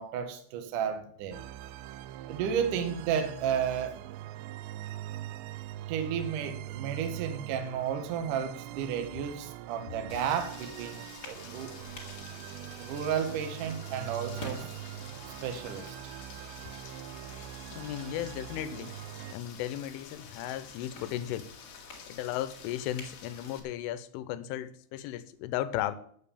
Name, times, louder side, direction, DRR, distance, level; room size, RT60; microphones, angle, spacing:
voice 1, 0.0-1.4 2.3-3.9 5.9-11.0 11.2-11.7 12.8-14.6 15.4-16.0, right 8 dB, 65° right, 2.1 m, -32 dB
sound 1, 1.3-19.4, right 13 dB, 90° right, 2.5 m, -42 dB
Rain, 10.1-23.6, left 6 dB, 55° left, 2.6 m, -49 dB
sound 2, 10.9-24.0, left 2 dB, 30° left, 1.9 m, -53 dB
voice 2, 17.3-18.9 19.3-21.7 22.1-26.0, left 12 dB, 85° left, 3.2 m, -36 dB
8.6 x 7.4 x 8.5 m
omnidirectional pair, 5.6 m